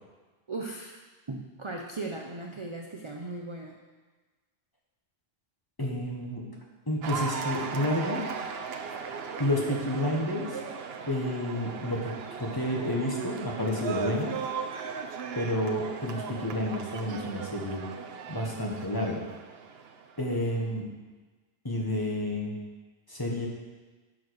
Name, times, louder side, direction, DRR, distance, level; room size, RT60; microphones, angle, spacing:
voice 1, 0.5-1.0 1.3-3.8, right 2 dB, 30° right, 1 dB, 0.6 m, -37 dB
voice 2, 5.8-6.5 6.9-8.2 9.4-10.6 11.1-14.4 15.3-17.8 18.3-19.3 20.2-20.9 21.6-22.6 23.1-23.5, left 1 dB, 15° left, -1 dB, 1.4 m, -30 dB
Cheering / Applause, 7.0-20.4, right 6 dB, 55° right, 0.9 m, -38 dB
10.5 x 5.0 x 6.4 m, 1.3 s
omnidirectional pair, 1.3 m